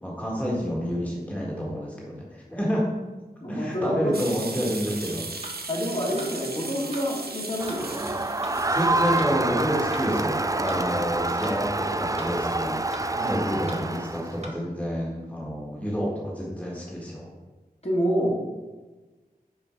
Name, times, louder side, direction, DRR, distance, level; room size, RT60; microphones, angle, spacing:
voice 1, 0.0-2.8 3.5-5.2 8.7-12.9 13.2-17.3, equal, 10° left, -4 dB, 1.7 m, -29 dB
voice 2, 3.4-4.2 5.7-8.2 13.1-13.4 17.8-18.4, equal, 40° left, -5 dB, 2.2 m, -28 dB
sound 1, 4.1-9.2, right 3 dB, 75° right, 0.8 m, -37 dB
sound 2, 5.4-5.6 6.2-6.3 6.9-7.1 7.7-7.8 8.4-8.6 9.2-9.3 9.9-10.1 10.7-10.8 11.4-11.6 12.2-12.3 12.9-13.1 13.7-13.8 14.4-14.6, right 1 dB, 45° right, 1.4 m, -40 dB
Crowd, 7.6-14.4, right 2 dB, 20° right, 0.4 m, -27 dB
6.3 x 4.5 x 5.8 m, 1.2 s
wide cardioid pair, 50°, 16 cm